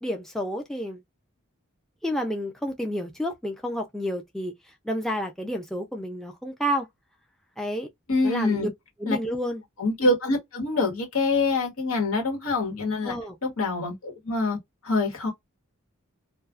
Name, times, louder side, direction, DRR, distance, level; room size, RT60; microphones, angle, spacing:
voice 1, 0.0-1.0 2.0-4.5 4.8-6.9 7.6-7.9 8.2-8.7 9.0-9.6 13.0-13.4, equal, ahead, 0.4 m, -30 dB
voice 2, 8.1-8.7 9.1-9.2 9.8-13.1 13.4-14.6 14.8-15.3, left 2 dB, 75° left, 1.2 m, -25 dB
2.3 x 2.3 x 2.3 m
head